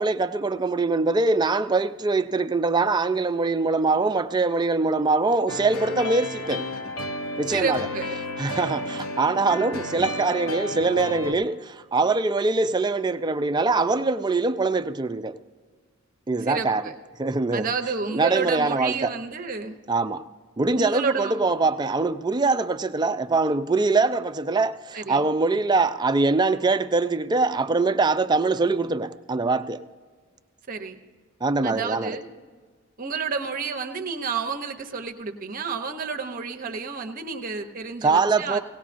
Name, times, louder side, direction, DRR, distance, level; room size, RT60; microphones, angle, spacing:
voice 1, 0.0-6.7 7.4-7.9 8.4-15.4 16.3-16.9 17.2-17.7 18.1-19.2 19.9-20.3 20.6-29.8 31.4-32.2 38.0-38.6, right 3 dB, 20° right, 0.4 m, -23 dB
sound 1, 5.5-11.3, left 2 dB, 75° left, 0.8 m, -32 dB
voice 2, 7.5-8.2 16.4-16.9 17.5-19.8 20.8-21.4 24.9-25.2 30.7-31.0 31.6-32.3 33.0-38.6, right 5 dB, 40° right, 0.8 m, -30 dB
18.5 x 17.5 x 2.6 m
head